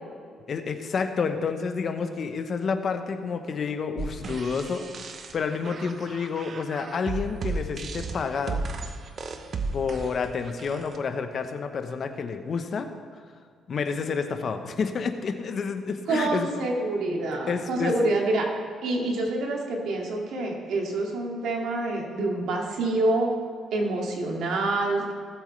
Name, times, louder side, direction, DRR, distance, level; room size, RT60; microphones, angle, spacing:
voice 1, 0.5-4.9 5.3-8.7 9.7-12.9 13.7-16.5 17.5-17.9, left 5 dB, 50° left, 7 dB, 1.0 m, -29 dB
sound 1, 4.0-11.0, right 3 dB, 50° right, 0.9 m, -35 dB
voice 2, 16.1-18.5 18.8-23.3 23.7-25.0, right 2 dB, 80° right, -1 dB, 2.3 m, -26 dB
18.0 x 8.0 x 3.3 m, 2.1 s
cardioid pair, 90°, 0 cm